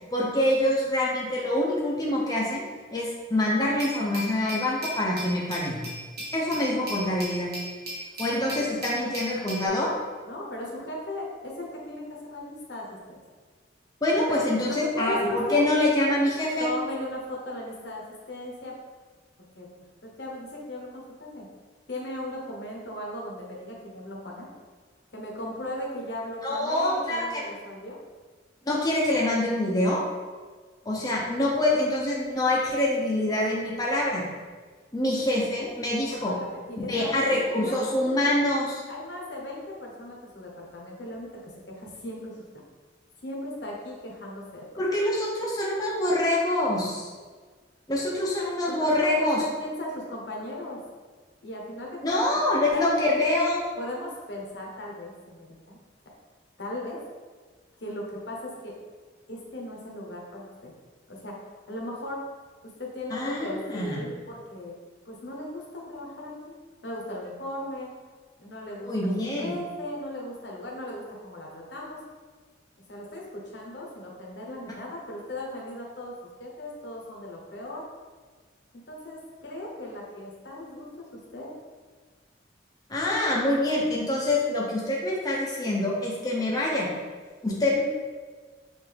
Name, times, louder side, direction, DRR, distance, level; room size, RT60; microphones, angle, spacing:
voice 1, 0.1-2.6 2.9-5.8 6.3-7.5 8.2-9.9 14.0-16.7 26.4-27.4 28.7-30.0 30.9-34.3 34.9-36.3 36.9-38.8 44.8-47.1 47.9-49.4 52.0-53.6 63.1-64.0 68.8-69.5 82.9-86.9 87.4-87.8, left 1 dB, 20° left, -4 dB, 0.6 m, -25 dB
Glass, 3.8-9.7, equal, 55° right, 1.4 m, -37 dB
voice 2, 8.3-8.7 8.9-9.1 10.2-13.2 14.3-14.4 14.7-15.6 16.6-18.7 19.4-19.7 20.0-21.5 21.9-24.5 25.1-28.0 36.0-37.8 38.9-42.4 43.2-44.6 48.7-50.8 51.4-52.2 52.7-53.1 53.8-55.8 56.6-57.0 57.8-58.8 59.3-60.7 61.1-61.3 61.7-62.2 62.8-64.7 65.0-66.5 66.8-67.9 68.4-69.1 69.4-72.0 72.9-76.1 76.4-77.8 78.9-81.5, left 1 dB, 70° left, -2 dB, 1.0 m, -37 dB
5.7 x 2.6 x 3.4 m, 1.5 s
head